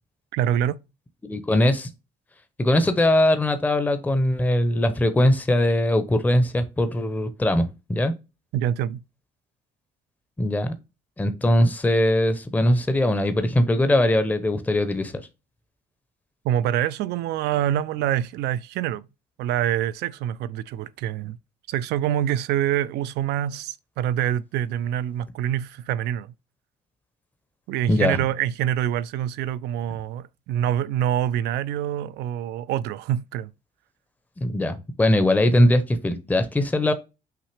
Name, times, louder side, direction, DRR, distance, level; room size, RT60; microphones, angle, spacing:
voice 1, 0.3-0.8 8.5-9.0 16.4-19.1 19.4-21.4 21.7-26.3 27.7-33.5, right 11 dB, 80° right, 0.4 m, -25 dB
voice 2, 1.3-1.9 2.6-8.1 10.4-10.7 11.2-15.1 27.9-28.2 34.4-36.9, left 1 dB, 10° left, 0.6 m, -21 dB
5.8 x 2.7 x 3.2 m
cardioid pair, 110°, 17 cm